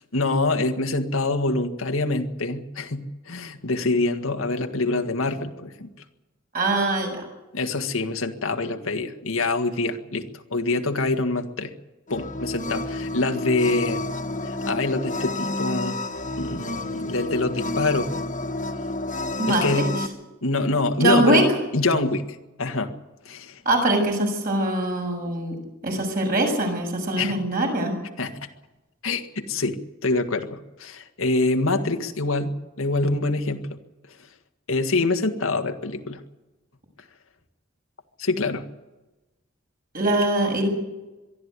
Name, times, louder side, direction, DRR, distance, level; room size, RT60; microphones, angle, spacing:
voice 1, 0.0-5.9 7.5-11.7 12.1-14.0 14.4-16.0 16.4-18.1 19.5-19.9 20.4-21.5 21.7-22.2 22.6-22.9 23.3-23.6 27.2-27.4 28.2-28.3 29.0-29.8 30.0-33.7 34.7-36.2 38.2-38.6, left 2 dB, 90° left, 6 dB, 1.8 m, -25 dB
voice 2, 6.5-7.2 19.4-19.9 21.0-21.4 23.7-25.5 25.8-27.9 39.9-40.7, right 1 dB, 45° right, 2 dB, 7.0 m, -22 dB
sound 1, 12.1-20.1, left 2 dB, 40° left, 1.4 m, -30 dB
23.0 x 13.0 x 9.7 m, 1.1 s
head